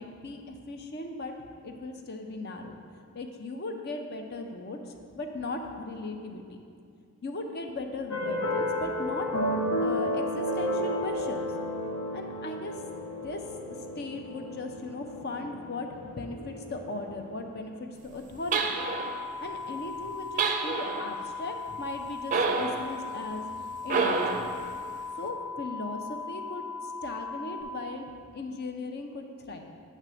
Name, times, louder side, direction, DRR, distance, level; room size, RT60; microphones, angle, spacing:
voice 1, 0.0-2.8 3.1-4.8 5.2-6.6 7.2-9.3 9.8-11.4 12.1-12.7 13.2-13.4 14.0-18.8 19.4-23.5 23.8-24.5 25.2-29.7, left 2 dB, 50° left, 4 dB, 0.7 m, -38 dB
sound 1, 8.1-17.3, left 1 dB, 75° left, 0.9 m, -32 dB
sound 2, 18.5-27.6, left 4 dB, 15° left, 1.0 m, -38 dB
sound 3, 18.5-19.3 20.4-21.1 22.3-22.9 23.9-24.6, right 4 dB, 40° right, 0.5 m, -28 dB
9.3 x 3.3 x 6.2 m, 2.3 s
head